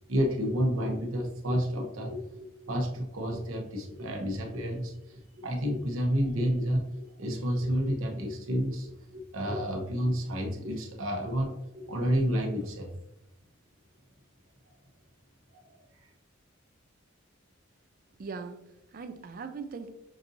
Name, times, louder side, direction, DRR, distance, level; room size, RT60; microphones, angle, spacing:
voice 1, 0.0-12.9 15.7-16.1, equal, 85° right, 1 dB, 0.9 m, -30 dB
voice 2, 18.2-19.9, right 5 dB, 45° right, 9 dB, 0.4 m, -40 dB
5.9 x 2.7 x 2.6 m, 0.85 s
head